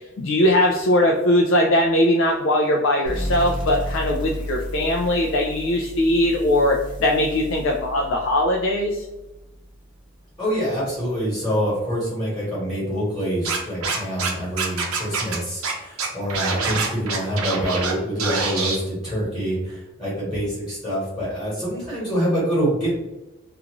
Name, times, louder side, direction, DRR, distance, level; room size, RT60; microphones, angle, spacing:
voice 1, 0.0-9.0, left 1 dB, 65° left, 0 dB, 0.3 m, -20 dB
sound 1, 3.1-10.3, equal, 5° right, 0.6 m, -33 dB
voice 2, 10.4-22.9, equal, 20° left, -10 dB, 1.2 m, -26 dB
Scratching (performance technique), 13.4-14.3 14.6-15.4 15.6-15.7 16.0-17.9 18.2-18.8, right 4 dB, 85° right, 0.6 m, -25 dB
2.5 x 2.4 x 2.9 m, 0.99 s
head